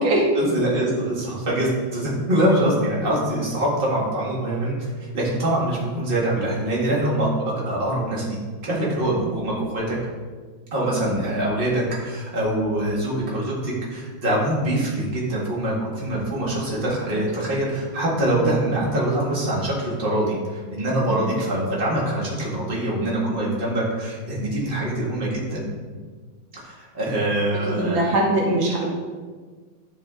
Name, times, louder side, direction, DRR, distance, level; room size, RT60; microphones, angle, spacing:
voice 1, 0.4-7.3 7.7-8.4 8.6-10.1 10.7-25.6 26.6-28.1, right 1 dB, 25° right, -5 dB, 1.9 m, -24 dB
voice 2, 21.1-21.4 27.8-28.9, right 1 dB, 75° right, -2 dB, 1.8 m, -22 dB
11.0 x 4.2 x 3.7 m, 1.5 s
omnidirectional pair, 2.2 m